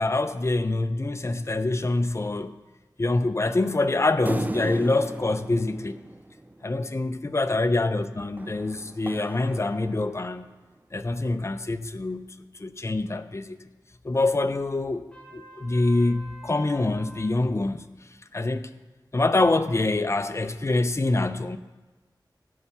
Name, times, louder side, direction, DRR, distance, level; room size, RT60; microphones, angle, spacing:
voice 1, 0.0-2.5 3.0-6.0 6.6-10.5 10.9-12.3 12.6-13.6 14.0-17.9 18.3-18.7 19.1-21.6, left 2 dB, 35° left, 0.6 m, -25 dB
sound 1, 4.3-6.9 8.4-10.5, right 2 dB, 20° right, 0.4 m, -36 dB
Trumpet, 15.1-17.4, right 1 dB, 15° left, 2.9 m, -47 dB
17.0 x 7.0 x 5.6 m
wide cardioid pair, 70°, 8 cm